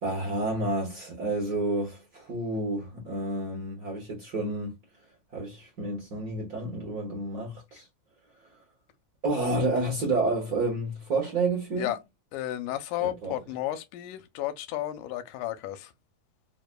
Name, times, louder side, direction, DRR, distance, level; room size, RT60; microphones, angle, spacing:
voice 1, 0.0-4.8 5.3-7.9 9.2-11.9 13.0-13.4, right 2 dB, 85° right, 0.8 m, -30 dB
voice 2, 12.3-15.9, left 13 dB, 85° left, 2.1 m, -33 dB
4.9 x 2.2 x 2.4 m
omnidirectional pair, 3.6 m